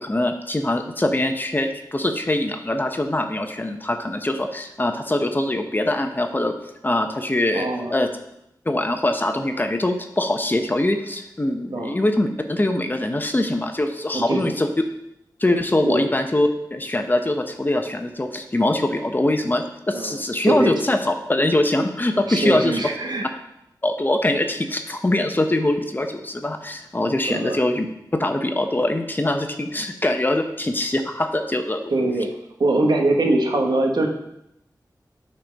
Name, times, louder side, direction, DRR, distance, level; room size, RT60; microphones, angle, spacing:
voice 1, 0.0-6.5 6.8-8.1 8.6-14.7 15.4-22.8 23.8-27.9 28.1-31.9, left 1 dB, 25° left, 5 dB, 0.8 m, -23 dB
voice 2, 7.5-7.9 11.7-12.0 14.1-14.4 15.8-16.1 19.9-20.2 20.4-20.7 22.3-23.2 27.3-27.6 31.9-32.3 32.6-34.1, right 2 dB, 80° right, 2 dB, 1.2 m, -22 dB
8.9 x 4.4 x 5.2 m, 0.81 s
wide cardioid pair, 85°, 7 cm